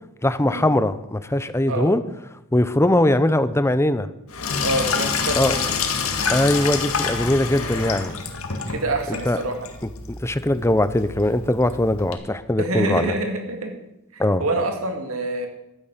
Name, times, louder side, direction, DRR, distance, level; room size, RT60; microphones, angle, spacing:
voice 1, 0.2-2.0 2.5-4.1 5.4-5.5 6.3-8.2 9.1-9.4 10.1-13.1 14.2-14.4, left 1 dB, 15° left, 13 dB, 0.7 m, -21 dB
Sink (filling or washing), 4.3-12.1, left 5 dB, 80° left, 2.0 m, -27 dB
voice 2, 4.6-5.7 8.6-9.7 12.6-13.8 14.1-15.5, right 2 dB, 75° right, 4 dB, 2.4 m, -26 dB
12.5 x 9.9 x 8.2 m, 0.87 s
head